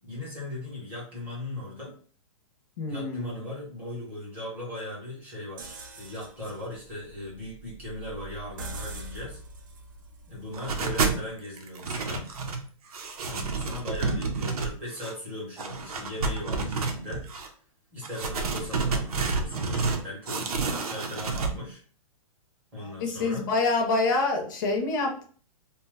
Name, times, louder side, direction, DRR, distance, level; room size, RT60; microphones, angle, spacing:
voice 1, 0.0-1.9 2.9-9.4 10.3-12.3 13.2-17.2 17.9-21.8 22.7-23.5, left 1 dB, 10° right, -5 dB, 0.8 m, -38 dB
voice 2, 2.8-3.4 22.8-25.2, left 3 dB, 35° left, 2 dB, 0.6 m, -27 dB
sound 1, 5.6-11.4, right 3 dB, 35° right, 0.4 m, -44 dB
sound 2, 10.5-11.2 11.6-12.6 12.9-15.1 15.6-17.5 18.0-20.0 20.3-21.5, right 4 dB, 85° right, 0.7 m, -29 dB
2.9 x 2.2 x 3.4 m, 0.43 s
hypercardioid pair, 175°, 18 cm